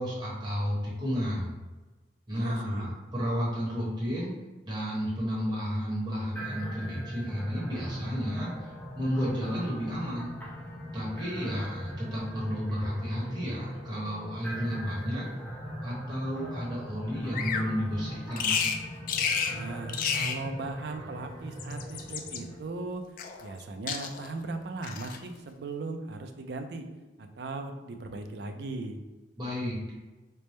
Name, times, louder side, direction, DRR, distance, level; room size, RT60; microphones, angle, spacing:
voice 1, 0.0-1.5 2.3-4.3 4.6-10.3 10.9-15.2 15.8-18.6 29.4-29.8, equal, 25° right, -7 dB, 1.0 m, -32 dB
voice 2, 2.3-2.9 19.5-23.0 23.4-26.9 27.2-29.0, right 3 dB, 65° right, 6 dB, 0.4 m, -38 dB
sound 1, 6.4-22.5, equal, 10° left, 0.8 m, -39 dB
Bird vocalization bird call bird song, 17.3-17.7 18.4-18.8 19.1-19.6 19.9-20.4 21.4-22.4 23.2-23.6 23.9-24.3 24.8-25.2, left 6 dB, 50° left, 0.3 m, -31 dB
3.3 x 2.1 x 4.2 m, 1.2 s
head